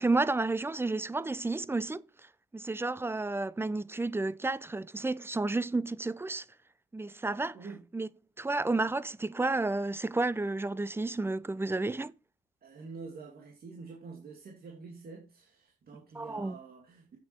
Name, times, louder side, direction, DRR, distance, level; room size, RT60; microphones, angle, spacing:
voice 1, 0.0-2.0 2.5-6.4 6.9-7.6 7.9-8.1 8.4-12.1 16.1-16.6, right 2 dB, 10° right, 0.5 m, -31 dB
voice 2, 12.6-17.2, right 4 dB, 50° right, 2.5 m, -47 dB
8.4 x 7.5 x 4.5 m
cardioid pair, 90°, 20 cm